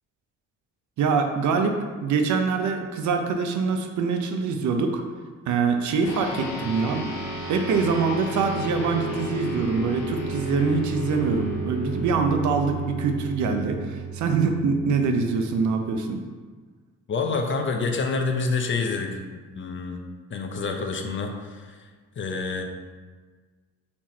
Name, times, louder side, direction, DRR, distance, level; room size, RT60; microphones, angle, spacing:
voice 1, 1.0-5.0 5.5-7.1 7.5-16.2, right 5 dB, 75° right, 5 dB, 0.6 m, -24 dB
sound 1, 6.0-15.7, right 1 dB, 65° left, 1.4 m, -33 dB
voice 2, 17.1-20.0 20.3-22.6, left 4 dB, 40° left, 4 dB, 0.6 m, -28 dB
4.3 x 2.9 x 4.2 m, 1.4 s
cardioid pair, 90°, 30 cm